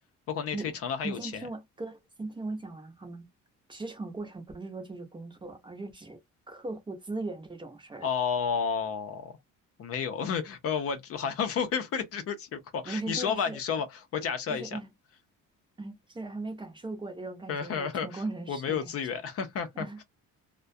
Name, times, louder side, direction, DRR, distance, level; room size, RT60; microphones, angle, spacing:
voice 1, 0.3-1.5 8.0-9.3 9.8-14.8 17.5-20.0, left 6 dB, 50° left, 0.5 m, -31 dB
voice 2, 1.0-3.2 3.7-6.2 6.5-8.1 12.8-13.6 14.5-14.9 15.8-18.8 19.8-20.0, right 2 dB, 15° right, 0.6 m, -38 dB
2.3 x 2.1 x 2.5 m
cardioid pair, 155°, 30 cm